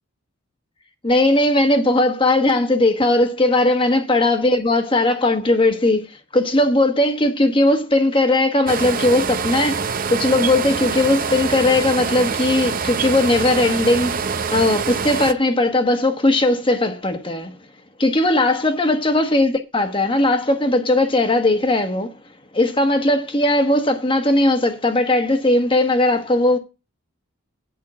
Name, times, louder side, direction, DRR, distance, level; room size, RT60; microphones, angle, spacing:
voice 1, 1.0-9.8 10.1-17.6 18.0-22.1 22.5-26.6, left 2 dB, 25° left, 1.2 m, -18 dB
sound 1, 8.7-15.3, right 5 dB, 40° right, 0.6 m, -25 dB
8.7 x 5.6 x 7.7 m
head